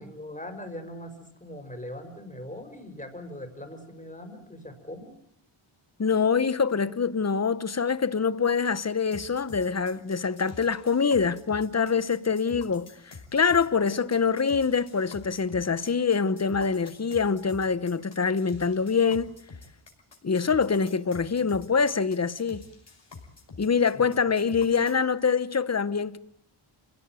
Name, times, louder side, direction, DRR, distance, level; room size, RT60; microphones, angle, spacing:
voice 1, 0.0-5.1 23.9-24.0, left 1 dB, 15° left, 5.3 m, -41 dB
voice 2, 6.0-19.3 20.2-22.7 23.6-26.2, left 5 dB, 30° left, 1.0 m, -25 dB
sound 1, 9.1-25.0, left 4 dB, 55° left, 5.4 m, -48 dB
28.5 x 17.0 x 9.1 m
wide cardioid pair, 90°, 49 cm